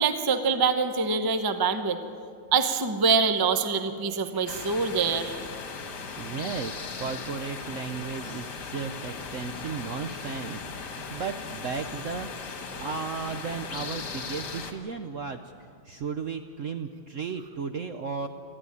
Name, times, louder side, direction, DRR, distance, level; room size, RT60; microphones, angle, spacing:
voice 1, 0.0-2.0 2.5-5.3, right 5 dB, 25° right, 9 dB, 0.5 m, -25 dB
sound 1, 4.5-14.7, left 5 dB, 60° left, 2.1 m, -38 dB
voice 2, 6.2-10.6 10.9-12.3 12.7-15.4 15.9-18.3, right 5 dB, 60° right, 7 dB, 0.8 m, -34 dB
20.0 x 14.0 x 9.8 m, 2.5 s
omnidirectional pair, 2.1 m